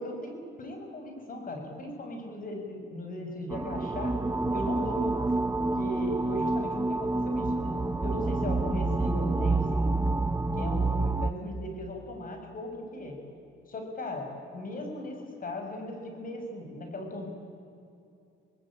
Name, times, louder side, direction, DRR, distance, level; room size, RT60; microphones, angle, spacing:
voice 1, 0.0-4.2 4.5-5.3 5.6-7.7 8.0-10.0 10.5-13.2 13.7-17.3, left 1 dB, 45° left, 3 dB, 6.3 m, -37 dB
sound 1, 3.5-11.3, right 2 dB, 15° right, 0.9 m, -28 dB
26.0 x 19.0 x 8.8 m, 2.7 s
cardioid pair, 110°, 20 cm